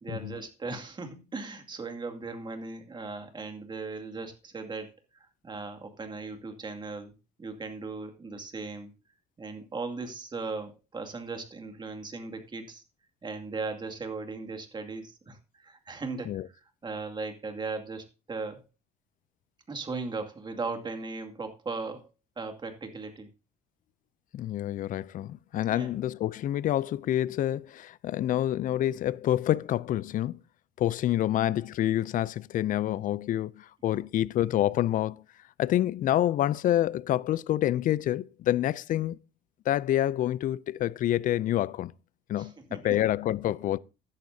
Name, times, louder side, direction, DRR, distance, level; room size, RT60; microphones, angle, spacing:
voice 1, 0.0-5.0 5.4-7.1 7.4-8.9 9.4-12.8 13.2-18.6 19.7-22.1 22.4-23.3 25.7-25.9 42.4-43.0, right 3 dB, 25° right, 2.3 m, -38 dB
voice 2, 24.3-30.4 30.8-35.2 35.6-39.2 39.7-41.9 42.3-43.8, left 12 dB, 50° left, 0.4 m, -27 dB
15.0 x 10.5 x 2.8 m
cardioid pair, 110°, 17 cm